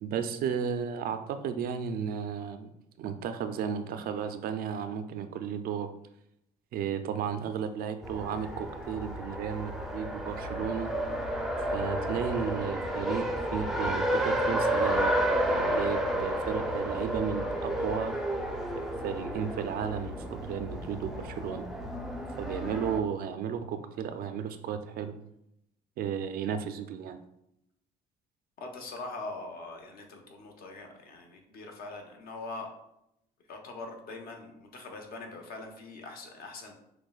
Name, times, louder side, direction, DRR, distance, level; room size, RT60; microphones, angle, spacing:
voice 1, 0.0-2.7 3.0-5.9 6.7-10.9 11.7-18.2 19.0-21.7 22.4-25.2 26.0-27.2, right 7 dB, 60° right, 9 dB, 0.4 m, -34 dB
Race car auto racing, 8.0-23.0, right 1 dB, ahead, 0.5 m, -31 dB
voice 2, 28.6-32.7 33.5-36.7, left 3 dB, 60° left, 2 dB, 0.9 m, -42 dB
6.4 x 2.1 x 2.3 m, 0.80 s
cardioid pair, 110°, 17 cm